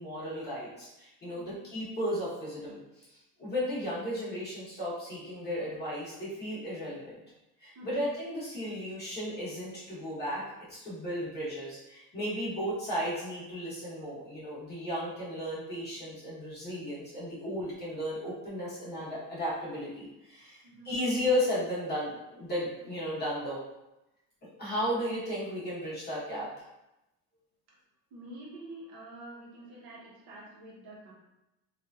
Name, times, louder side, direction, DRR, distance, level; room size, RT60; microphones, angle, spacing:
voice 1, 0.0-3.1 3.4-7.2 7.6-23.6 24.6-26.7, equal, 25° left, -8 dB, 0.9 m, -34 dB
voice 2, 28.1-31.1, right 1 dB, 60° right, -4 dB, 1.0 m, -47 dB
3.0 x 2.5 x 2.3 m, 0.93 s
cardioid pair, 160°, 42 cm